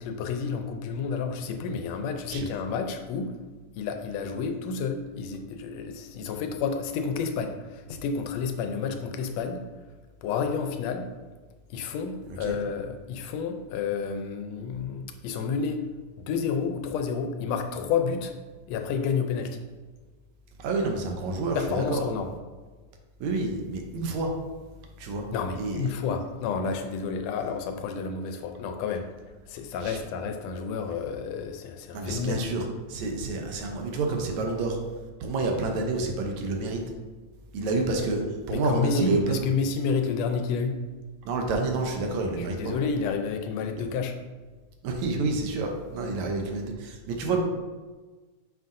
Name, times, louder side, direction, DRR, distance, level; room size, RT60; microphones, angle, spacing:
voice 1, 0.0-3.3 3.7-9.6 10.2-11.1 11.7-15.8 16.2-18.3 18.7-19.6 21.5-22.3 25.3-29.1 29.5-32.4 38.5-40.8 42.4-44.2, left 5 dB, 80° left, 6 dB, 1.6 m, -30 dB
voice 2, 20.6-22.0 23.2-24.3 25.0-25.3 25.6-25.9 29.8-30.0 31.9-34.8 35.2-36.8 37.5-39.5 41.2-42.7 44.8-47.4, right 3 dB, 75° right, 2 dB, 2.0 m, -29 dB
7.6 x 5.6 x 2.6 m, 1.3 s
omnidirectional pair, 3.4 m